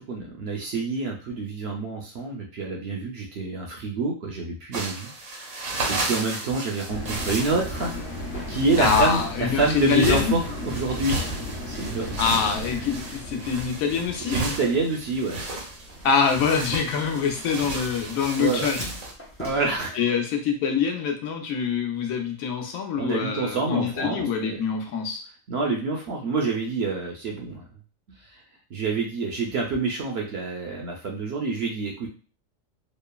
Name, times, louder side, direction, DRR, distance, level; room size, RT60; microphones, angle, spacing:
voice 1, 0.0-7.9 8.5-11.3 11.7-12.1 14.3-15.4 18.4-18.7 19.4-20.0 23.0-24.6 25.5-27.6 28.7-32.1, right 3 dB, 65° right, 0 dB, 0.7 m, -27 dB
sound 1, 4.7-19.1, right 2 dB, 90° right, 1.3 m, -33 dB
sound 2, 6.9-17.6 18.0-18.1, left 1 dB, 60° left, 1.0 m, -36 dB
sound 3, 7.3-19.8, equal, 20° left, 0.3 m, -46 dB
voice 2, 8.8-10.3 12.2-14.4 16.0-18.9 19.5-19.7 20.0-25.2, left 6 dB, 90° left, 4 dB, 1.0 m, -25 dB
3.0 x 2.0 x 2.2 m, 0.38 s
omnidirectional pair, 1.4 m